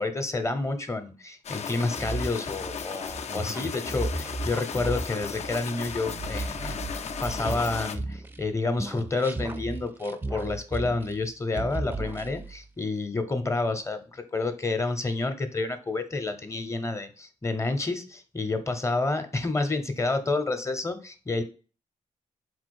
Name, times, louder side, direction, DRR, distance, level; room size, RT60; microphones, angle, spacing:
voice 1, 0.0-6.8 7.2-21.4, left 3 dB, 20° left, 8 dB, 0.6 m, -29 dB
sound 1, 1.4-8.0, left 7 dB, 55° left, 0.4 m, -36 dB
sound 2, 1.9-8.5 8.8-11.3 11.5-12.6, right 2 dB, 15° right, 0.4 m, -35 dB
4.0 x 2.4 x 4.5 m, 0.36 s
cardioid pair, 100°, 13 cm